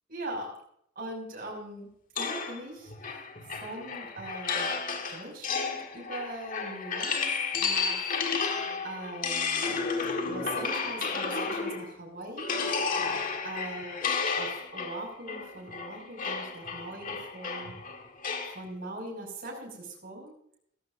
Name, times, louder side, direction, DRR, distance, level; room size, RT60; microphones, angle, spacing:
voice 1, 0.1-0.5 0.9-1.9 2.1-4.7 5.1-8.2 8.8-9.8 10.3-12.5 13.4-17.7 18.5-20.3, right 1 dB, 45° right, -1 dB, 6.2 m, -41 dB
sound 1, 2.2-12.0 12.4-18.6, left 5 dB, 40° left, 1.7 m, -32 dB
18.0 x 14.5 x 2.6 m, 0.69 s
head